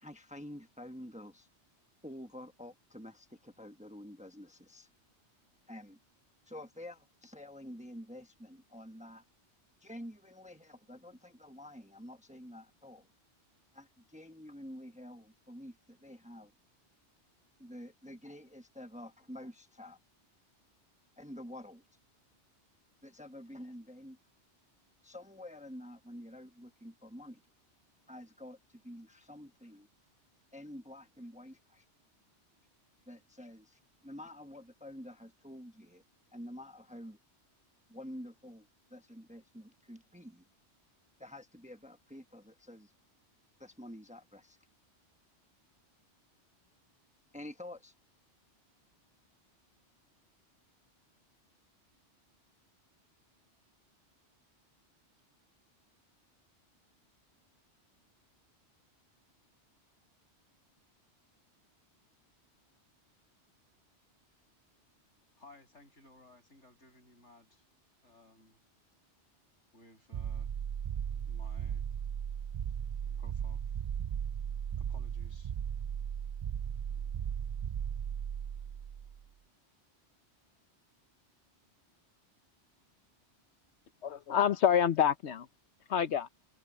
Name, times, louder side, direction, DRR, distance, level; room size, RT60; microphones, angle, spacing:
voice 1, 0.0-1.5 2.0-4.9 5.7-6.0 6.5-9.2 9.8-13.1 13.7-16.5 17.6-20.0 21.2-21.8 23.0-24.2 25.0-27.4 28.1-28.6 28.8-29.9 30.5-31.8 33.1-36.0 36.3-37.2 37.9-40.4 41.2-42.9 43.6-44.6 47.3-47.9, left 1 dB, 5° right, 1.1 m, -48 dB
voice 2, 65.4-67.7 68.0-68.6 69.7-70.5 71.3-71.8 73.2-73.6 74.8-75.5, left 2 dB, 90° left, 7.2 m, -59 dB
sound 1, 70.1-79.2, right 8 dB, 70° right, 0.3 m, -36 dB
voice 3, 84.0-85.5 85.9-86.3, left 8 dB, 70° left, 1.1 m, -27 dB
omnidirectional pair, 1.2 m